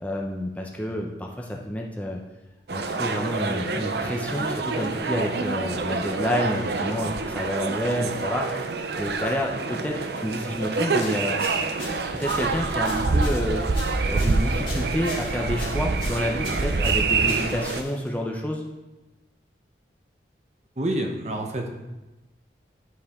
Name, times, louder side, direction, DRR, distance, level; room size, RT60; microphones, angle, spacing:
voice 1, 0.0-2.2 2.7-8.5 9.0-11.4 12.1-13.6 14.1-18.6, equal, 10° left, 0 dB, 0.6 m, -29 dB
sound 1, 2.7-17.8, right 3 dB, 65° right, 0.5 m, -26 dB
sound 2, 11.0-18.2, left 3 dB, 30° left, 1.9 m, -42 dB
voice 2, 20.8-21.7, right 1 dB, 40° right, 2 dB, 0.8 m, -28 dB
11.0 x 4.8 x 3.6 m, 1.1 s
head